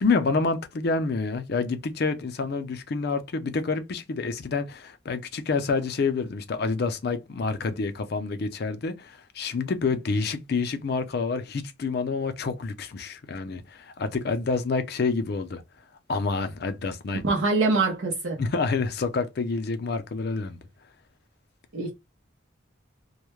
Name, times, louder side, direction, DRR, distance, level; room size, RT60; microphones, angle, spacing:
voice 1, 0.0-15.6 16.1-17.2 18.4-20.6, left 4 dB, 50° left, 0.4 m, -28 dB
voice 2, 17.2-18.4 21.7-21.9, right 3 dB, 80° right, 0.7 m, -24 dB
2.3 x 2.1 x 3.0 m
head